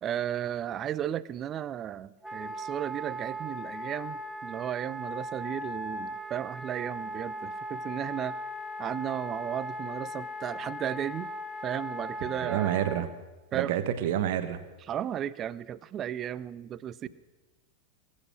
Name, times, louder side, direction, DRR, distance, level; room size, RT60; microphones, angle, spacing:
voice 1, 0.0-8.4 8.8-11.3 11.6-12.7 13.5-13.7 14.9-17.1, right 10 dB, 30° right, 19 dB, 0.5 m, -34 dB
Wind instrument woodwind instrument, 2.2-13.1, equal, 5° right, 1.1 m, -38 dB
voice 2, 12.3-13.1 13.5-14.6, right 11 dB, 50° right, 10 dB, 1.2 m, -28 dB
20.5 x 8.4 x 6.2 m, 1.1 s
figure-of-eight pair, 90°, 0 cm